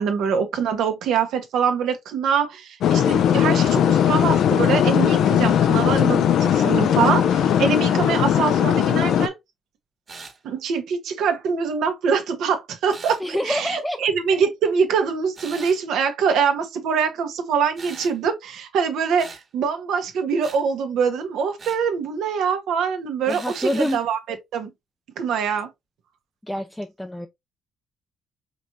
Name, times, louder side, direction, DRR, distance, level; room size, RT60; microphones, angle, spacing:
voice 1, 0.0-9.3 10.4-24.7 25.2-25.7, right 6 dB, 80° right, 1.2 m, -24 dB
sound 1, 2.8-9.3, left 9 dB, 75° left, 0.5 m, -19 dB
sound 2, 10.1-10.4 12.9-13.2 15.3-15.8 17.8-18.2 19.2-19.4 20.4-20.6 21.6-21.8 23.3-24.0, right 4 dB, 40° right, 1.6 m, -40 dB
voice 2, 13.2-14.0 23.3-24.0 26.5-27.3, left 1 dB, 5° left, 0.5 m, -27 dB
5.1 x 3.2 x 2.7 m
cardioid pair, 90°, 0 cm